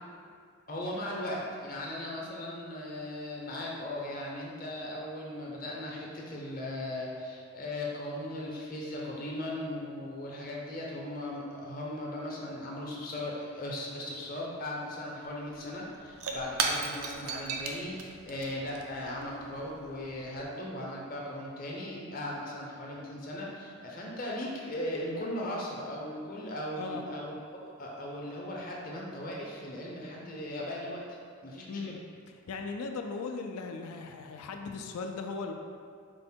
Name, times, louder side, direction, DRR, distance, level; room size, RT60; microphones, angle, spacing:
voice 1, 0.7-27.3 27.6-31.2 31.4-32.0, left 1 dB, 40° left, -3 dB, 0.6 m, -38 dB
Shatter / Crushing, 15.2-15.3 15.5-20.4, right 4 dB, 80° right, 0.4 m, -37 dB
voice 2, 32.5-35.5, left 4 dB, 90° left, 4 dB, 0.4 m, -37 dB
4.5 x 2.1 x 4.3 m, 2.2 s
head